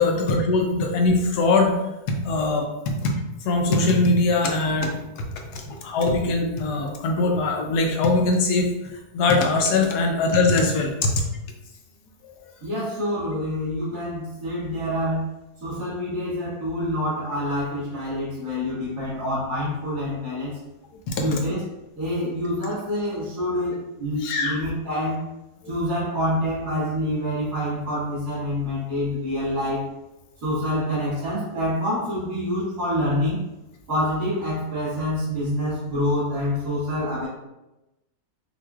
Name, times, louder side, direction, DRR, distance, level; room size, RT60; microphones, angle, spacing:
voice 1, 0.0-1.7 2.1-3.1 3.4-4.9 5.5-8.7 9.1-11.1 21.1-21.2 24.2-24.6, left 3 dB, 75° left, 2 dB, 1.2 m, -21 dB
voice 2, 12.6-15.3 15.6-20.6 21.2-21.7 22.0-25.2 25.7-29.8 30.4-33.4 33.9-37.3, left 1 dB, 70° right, -15 dB, 2.2 m, -26 dB
5.5 x 2.6 x 2.3 m, 0.98 s
omnidirectional pair, 1.7 m